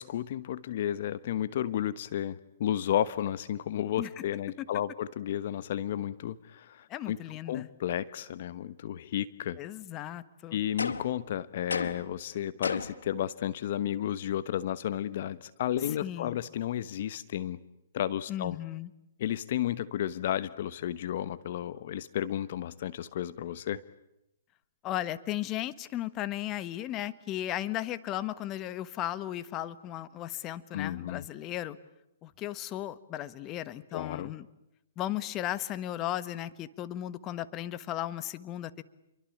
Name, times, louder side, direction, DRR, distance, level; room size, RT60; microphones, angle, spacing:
voice 1, 0.0-7.2 7.5-9.6 10.5-17.6 17.9-18.6 19.2-23.8 30.7-31.2 33.9-34.3, left 11 dB, 55° left, 16 dB, 1.1 m, -32 dB
voice 2, 6.9-7.7 9.6-10.6 16.0-16.4 18.3-18.9 24.8-31.8 32.2-34.5 35.0-38.8, left 13 dB, 25° left, 15 dB, 1.3 m, -36 dB
sound 1, 10.8-11.2 11.7-12.1 12.6-13.1, left 4 dB, 90° left, 2.1 m, -33 dB
28.5 x 24.0 x 8.7 m, 0.86 s
hypercardioid pair, 135°, 0 cm